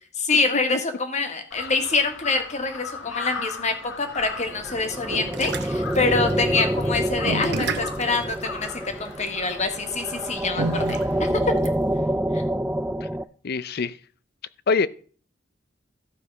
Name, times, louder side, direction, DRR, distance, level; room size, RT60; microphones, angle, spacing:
voice 1, 0.2-11.0 11.3-11.5 12.3-12.4, left 3 dB, 40° left, 1.7 m, -25 dB
Crow, 1.5-11.3, left 5 dB, 85° left, 1.6 m, -39 dB
sound 1, 4.2-12.0, right 3 dB, 60° right, 1.1 m, -31 dB
sound 2, 4.4-13.2, right 1 dB, 10° right, 0.4 m, -27 dB
voice 2, 13.4-14.0 14.7-14.9, left 4 dB, 55° left, 0.6 m, -25 dB
14.0 x 4.8 x 5.5 m
head